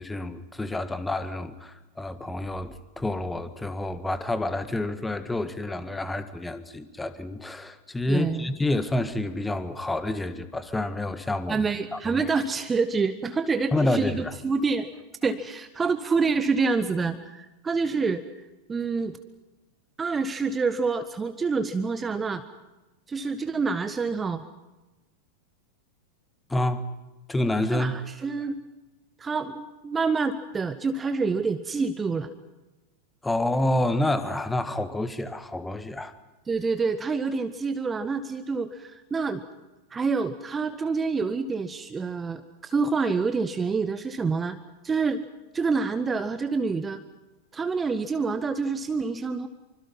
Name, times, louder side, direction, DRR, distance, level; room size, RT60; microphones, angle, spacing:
voice 1, 0.0-11.6 11.9-12.3 13.7-14.3 26.5-26.8 27.3-28.0 33.2-36.1, left 1 dB, 10° left, 12 dB, 1.6 m, -28 dB
voice 2, 8.1-8.5 11.5-14.9 15.2-18.2 18.7-19.2 20.0-22.4 23.1-24.4 27.7-28.6 29.2-32.3 36.5-39.4 39.9-44.6 44.8-45.2 45.5-47.0 47.5-49.5, right 4 dB, 15° right, 11 dB, 1.0 m, -27 dB
25.5 x 25.5 x 5.6 m, 1.1 s
figure-of-eight pair, 90°, 0 cm